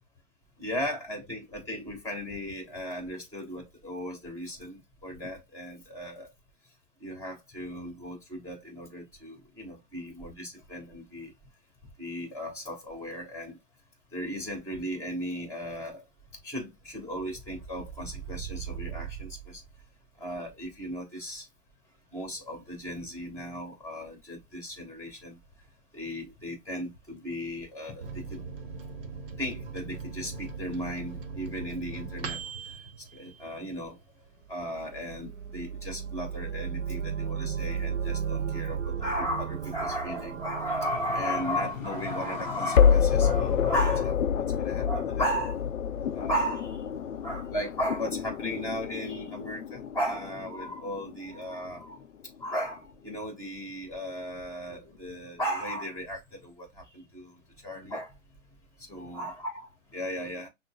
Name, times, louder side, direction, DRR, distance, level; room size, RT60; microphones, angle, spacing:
voice 1, 0.6-6.3 7.0-11.3 12.0-13.6 14.1-16.0 16.4-19.6 20.2-21.5 22.1-25.4 25.9-28.4 29.4-32.8 33.1-34.0 34.5-45.6 46.1-46.8 47.2-52.0 52.4-58.1 58.9-60.5, equal, 5° left, 1.6 m, -35 dB
Microwave oven, 28.0-34.1 34.5-34.6 34.8-35.5, right 5 dB, 45° right, 0.9 m, -40 dB
sound 1, 34.6-43.4, right 7 dB, 70° right, 0.6 m, -35 dB
sound 2, 40.9-52.0, left 7 dB, 80° left, 0.5 m, -28 dB
6.0 x 2.0 x 2.3 m
figure-of-eight pair, 130°, 39 cm